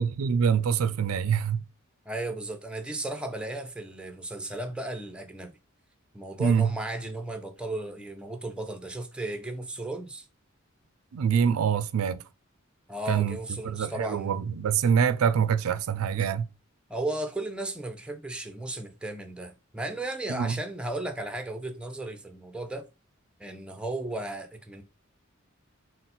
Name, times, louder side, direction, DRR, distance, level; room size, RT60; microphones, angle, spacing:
voice 1, 0.0-1.6 6.4-6.7 11.1-12.2 13.1-13.4 13.6-16.4 20.3-20.6, right 7 dB, 90° right, 0.4 m, -25 dB
voice 2, 2.1-5.5 6.1-10.3 12.9-14.4 16.9-22.9 23.4-24.8, right 2 dB, 5° right, 0.5 m, -35 dB
3.9 x 2.0 x 4.2 m
head